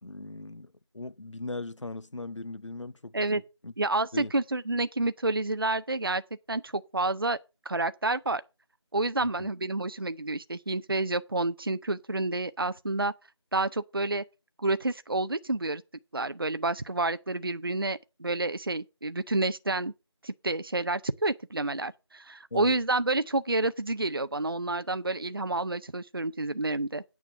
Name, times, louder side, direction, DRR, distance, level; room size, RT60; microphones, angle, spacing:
voice 1, 0.0-3.1 3.6-3.7 4.1-4.3 9.2-9.5 22.5-22.7, left 2 dB, 85° left, 0.8 m, -39 dB
voice 2, 3.8-6.2 6.5-7.4 7.7-8.4 8.9-13.1 13.5-14.2 14.6-15.8 16.1-19.9 20.2-27.0, right 2 dB, 50° right, 0.5 m, -29 dB
9.3 x 5.9 x 6.5 m
figure-of-eight pair, 175°, 15 cm